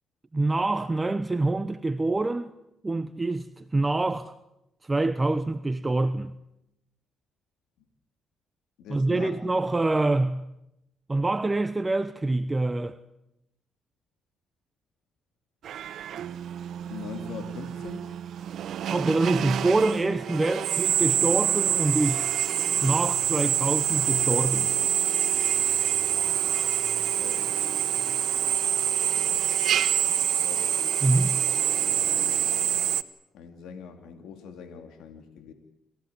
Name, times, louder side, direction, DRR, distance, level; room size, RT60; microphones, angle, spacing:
voice 1, 0.3-2.5 2.8-4.3 4.8-6.3 8.9-10.5 11.1-13.0 18.9-22.2 22.8-24.7 31.0-31.4, right 2 dB, 20° right, 0.9 m, -25 dB
voice 2, 8.8-9.4 16.9-18.0 27.2-27.5 29.2-30.7 32.0-32.4 33.3-35.5, left 6 dB, 85° left, 2.6 m, -43 dB
Drill, 15.6-33.0, right 10 dB, 70° right, 1.0 m, -26 dB
27.5 x 15.5 x 9.5 m
cardioid pair, 85°, 0 cm